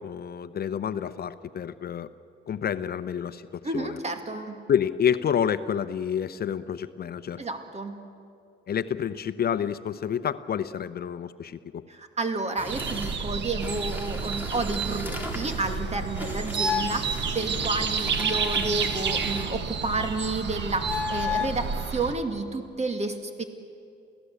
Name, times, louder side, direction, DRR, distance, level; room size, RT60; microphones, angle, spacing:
voice 1, 0.0-2.1 2.5-4.0 4.7-7.4 8.7-11.8, left 8 dB, 50° left, 12 dB, 0.8 m, -29 dB
voice 2, 3.6-4.6 7.4-8.0 11.9-23.4, right 3 dB, 35° right, 6 dB, 2.4 m, -31 dB
sound 1, 12.6-19.5, equal, 10° right, 3.7 m, -39 dB
sound 2, 12.7-22.1, right 6 dB, 65° right, 1.7 m, -30 dB
sound 3, 16.5-17.0 18.2-19.4 20.8-21.6, left 5 dB, 10° left, 2.5 m, -31 dB
28.0 x 16.0 x 8.2 m, 2.4 s
cardioid pair, 90°, 20 cm